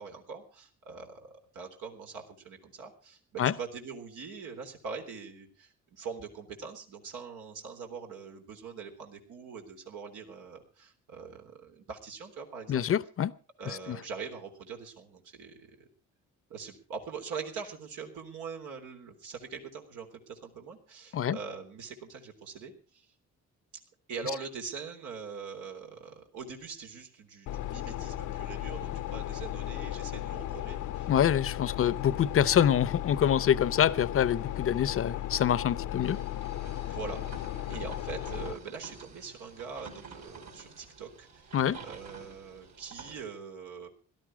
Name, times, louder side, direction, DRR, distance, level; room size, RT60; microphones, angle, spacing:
voice 1, 0.0-12.8 13.6-15.9 16.5-23.1 24.1-31.1 36.8-41.6 41.8-43.9, right 5 dB, 80° right, 3.6 m, -43 dB
voice 2, 12.7-13.3 13.7-14.0 21.1-21.4 31.1-36.2 41.5-41.8, left 9 dB, 45° left, 0.8 m, -26 dB
sound 1, 27.5-38.5, left 13 dB, 75° left, 0.9 m, -36 dB
sound 2, 36.0-43.2, right 4 dB, 65° right, 5.5 m, -49 dB
17.5 x 12.5 x 4.9 m
cardioid pair, 90°, 30 cm